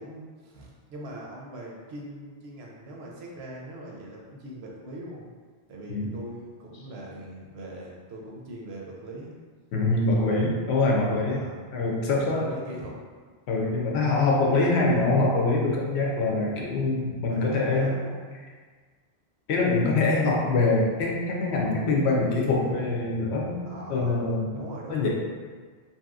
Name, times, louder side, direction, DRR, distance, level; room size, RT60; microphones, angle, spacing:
voice 1, 0.0-5.3 5.7-9.3 11.3-11.7 12.2-13.0 17.2-18.4 23.6-24.2 24.5-25.1, right 1 dB, 75° right, -2 dB, 0.9 m, -41 dB
voice 2, 9.7-11.4 11.7-12.5 13.5-18.0 19.5-25.1, left 3 dB, 80° left, -2 dB, 0.9 m, -24 dB
2.9 x 2.7 x 2.3 m, 1.5 s
omnidirectional pair, 1.1 m